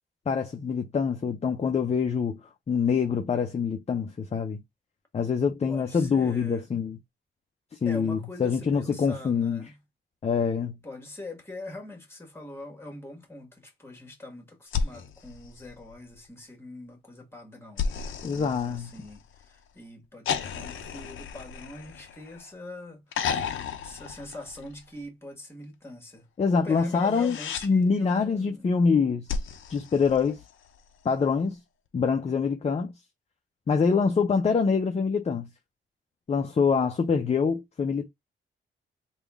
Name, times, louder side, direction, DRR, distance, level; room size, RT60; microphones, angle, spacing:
voice 1, 0.3-2.4 2.7-4.6 5.1-7.0 7.8-9.6 10.2-10.8 18.2-18.9 26.4-27.4 27.6-29.3 29.7-30.4 31.0-31.6 31.9-32.9 33.7-35.5 36.3-38.1, left 5 dB, 30° left, 0.5 m, -25 dB
voice 2, 5.7-6.7 7.8-9.8 10.8-28.7, left 2 dB, 10° left, 1.5 m, -43 dB
sound 1, 14.7-16.3 17.8-19.4 20.3-22.5 23.1-24.9 26.9-27.7 29.3-30.8 32.3-32.4, left 6 dB, 90° left, 0.5 m, -34 dB
3.6 x 2.3 x 3.4 m
cardioid pair, 95°, 20 cm